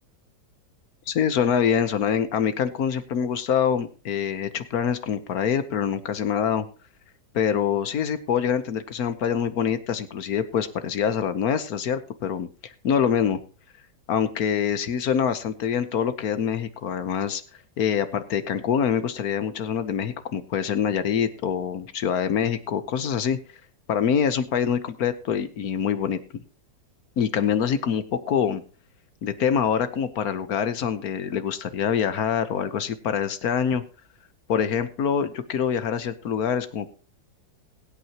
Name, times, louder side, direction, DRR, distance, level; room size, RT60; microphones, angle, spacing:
voice 1, 1.1-6.7 7.3-13.4 14.1-17.4 17.8-23.4 23.9-26.2 27.2-28.6 29.2-33.8 34.5-36.9, left 8 dB, 60° left, 12 dB, 1.3 m, -25 dB
22.0 x 8.4 x 2.9 m, 0.36 s
omnidirectional pair, 2.0 m